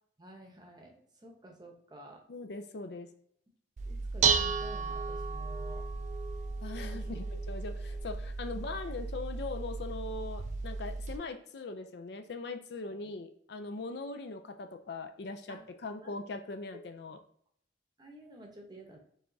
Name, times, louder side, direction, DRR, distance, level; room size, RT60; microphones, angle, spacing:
voice 1, 0.2-2.2 3.8-5.9 6.8-7.2 8.5-8.7 13.0-13.1 15.5-15.6 16.0-16.1 18.0-19.0, right 1 dB, 20° right, 2 dB, 0.8 m, -52 dB
voice 2, 2.3-3.1 6.6-17.2, left 3 dB, 60° left, 7 dB, 0.4 m, -41 dB
Dishes pots and pans, 3.8-11.2, right 5 dB, 40° right, 0.3 m, -34 dB
4.8 x 3.4 x 2.7 m, 0.65 s
head